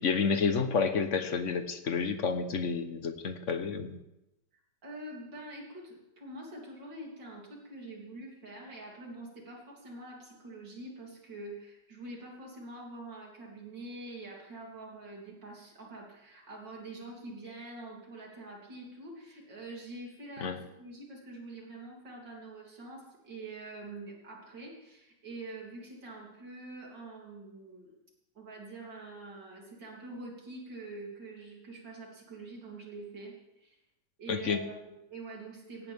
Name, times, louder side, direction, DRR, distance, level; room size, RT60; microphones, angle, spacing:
voice 1, 0.0-4.0 20.4-20.6 34.3-34.6, left 5 dB, 50° left, 9 dB, 1.3 m, -30 dB
voice 2, 4.8-27.9 28.3-33.3 33.6-33.8 34.2-35.9, right 2 dB, 90° right, -2 dB, 4.0 m, -45 dB
17.5 x 16.0 x 3.6 m, 0.90 s
omnidirectional pair, 1.9 m